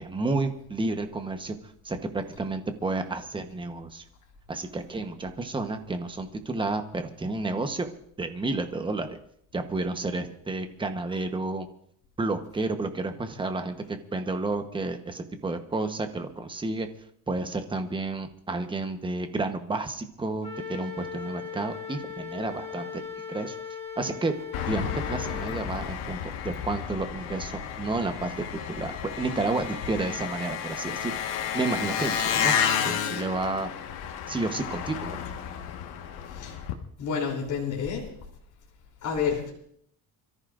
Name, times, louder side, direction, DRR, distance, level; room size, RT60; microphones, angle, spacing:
voice 1, 0.0-4.0 4.5-7.9 8.2-9.2 9.5-11.7 12.2-16.9 17.3-23.0 23.3-23.6 24.0-24.3 24.7-26.2 26.4-31.1 31.5-32.5 32.8-33.7 34.3-35.2, right 3 dB, 10° right, 7 dB, 1.0 m, -31 dB
Wind instrument woodwind instrument, 20.4-25.6, left 6 dB, 15° left, 1.7 m, -38 dB
Engine, 24.5-36.7, left 8 dB, 90° left, 1.6 m, -31 dB
voice 2, 37.0-38.0 39.0-39.5, left 6 dB, 45° left, -1 dB, 3.4 m, -29 dB
27.5 x 14.0 x 2.6 m, 0.67 s
cardioid pair, 145°, 41 cm